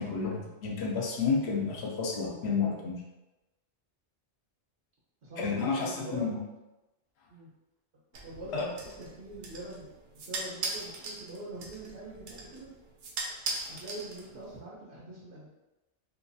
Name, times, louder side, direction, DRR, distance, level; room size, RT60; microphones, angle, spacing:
voice 1, 0.0-3.0 5.4-6.4 8.5-8.6, left 5 dB, 75° left, -1 dB, 0.8 m, -30 dB
voice 2, 5.2-6.4 7.3-7.5 8.2-9.9 10.2-12.7 13.7-15.5, right 1 dB, 75° right, -6 dB, 1.1 m, -43 dB
sound 1, 8.1-14.6, right 3 dB, 60° right, 0.6 m, -40 dB
2.6 x 2.3 x 2.6 m, 1.0 s
omnidirectional pair, 1.1 m